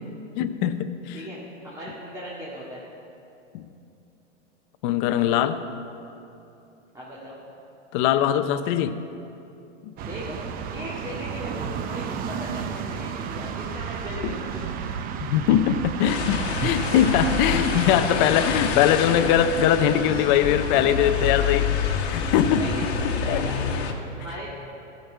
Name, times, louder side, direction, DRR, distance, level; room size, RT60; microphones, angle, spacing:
voice 1, 0.4-1.2 3.5-3.6 4.8-5.7 7.9-9.0 9.8-9.9 14.2-14.3 15.2-21.7 22.1-22.6 23.3-23.4, left 10 dB, 40° left, 11 dB, 0.6 m, -21 dB
voice 2, 1.6-2.8 6.9-7.4 10.0-14.7 17.6-17.7 22.6-23.6 24.2-24.5, equal, 10° right, -8 dB, 1.9 m, -38 dB
sound 1, 10.0-21.6, right 7 dB, 25° right, 0.5 m, -33 dB
sound 2, 16.0-23.9, left 6 dB, 60° left, 1.3 m, -27 dB
13.0 x 5.4 x 7.9 m, 2.8 s
hypercardioid pair, 120°, 36 cm